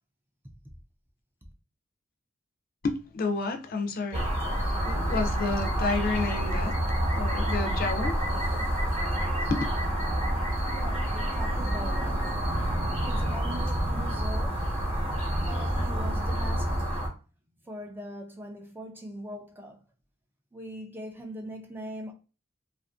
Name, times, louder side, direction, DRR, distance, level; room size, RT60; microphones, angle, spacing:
voice 1, 2.8-4.3 4.9-6.8 7.1-8.2 9.5-9.6, left 3 dB, 50° left, 0.4 m, -30 dB
sound 1, 4.1-17.1, right 1 dB, 30° right, 0.9 m, -28 dB
voice 2, 10.7-12.3 13.0-14.7 15.5-17.0 17.6-19.8 20.5-22.1, right 1 dB, 10° right, 0.4 m, -41 dB
2.5 x 2.4 x 2.4 m
head